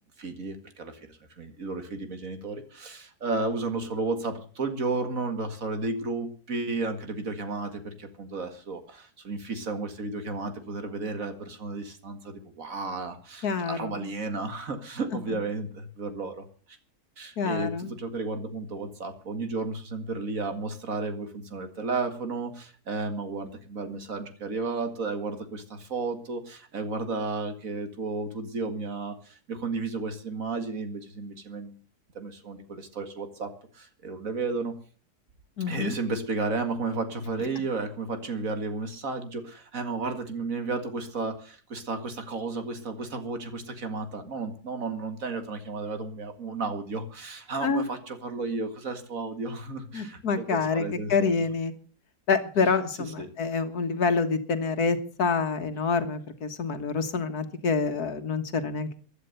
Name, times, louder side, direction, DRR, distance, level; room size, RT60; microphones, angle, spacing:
voice 1, 0.2-1.1 1.4-16.4 17.2-31.8 32.1-34.7 35.7-51.4 53.0-53.3, right 3 dB, 60° right, 8 dB, 2.3 m, -33 dB
voice 2, 13.4-14.1 17.4-17.9 35.6-35.9 47.6-47.9 49.9-51.7 52.3-59.0, left 4 dB, 80° left, 8 dB, 2.0 m, -27 dB
16.0 x 11.0 x 6.8 m, 0.41 s
omnidirectional pair, 1.6 m